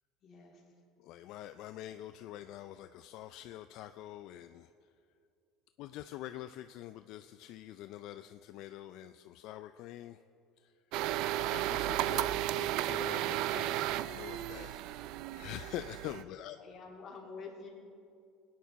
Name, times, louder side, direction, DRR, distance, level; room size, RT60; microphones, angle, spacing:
voice 1, 0.2-0.7 16.6-17.7, left 4 dB, 30° left, -3 dB, 2.9 m, -48 dB
voice 2, 1.0-4.7 5.8-10.2 10.6-10.7 11.4-16.6, left 13 dB, 60° left, 10 dB, 0.3 m, -45 dB
sound 1, 10.9-16.2, right 14 dB, 60° right, 0.3 m, -34 dB
20.5 x 9.3 x 4.1 m, 2.5 s
cardioid pair, 140°, 0 cm